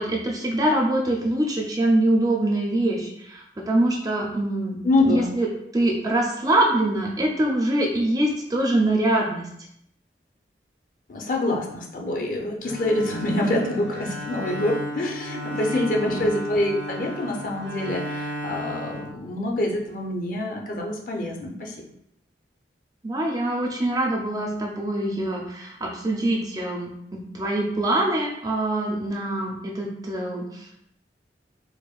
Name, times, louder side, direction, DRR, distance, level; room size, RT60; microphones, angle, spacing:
voice 1, 0.0-4.8 5.1-5.5 5.7-9.5 15.7-16.3 23.0-30.8, right 1 dB, 20° right, -1 dB, 0.4 m, -24 dB
voice 2, 4.8-5.3 11.1-21.8, left 1 dB, 50° left, 0 dB, 0.6 m, -26 dB
Bowed string instrument, 12.6-19.8, equal, 75° right, 0.6 m, -34 dB
4.6 x 2.1 x 2.4 m, 0.75 s
head